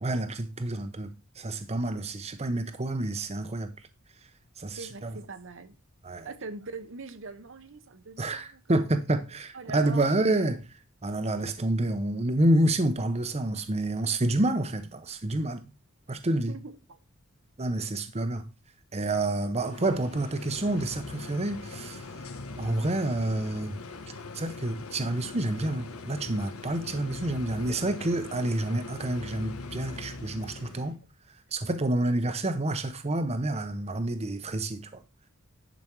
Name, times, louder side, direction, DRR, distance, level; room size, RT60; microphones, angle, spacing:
voice 1, 0.0-1.1 1.4-3.7 4.6-5.2 6.0-6.3 8.2-15.7 16.1-16.6 17.6-18.5 18.9-22.1 22.6-23.8 24.3-31.0 31.5-35.0, right 1 dB, 30° right, 0.8 m, -28 dB
voice 2, 4.8-5.7 6.2-8.8 9.5-10.1 16.5-17.0, right 3 dB, 60° right, 0.9 m, -42 dB
sound 1, 19.6-31.0, left 3 dB, 80° left, 1.3 m, -41 dB
10.5 x 5.3 x 4.5 m
head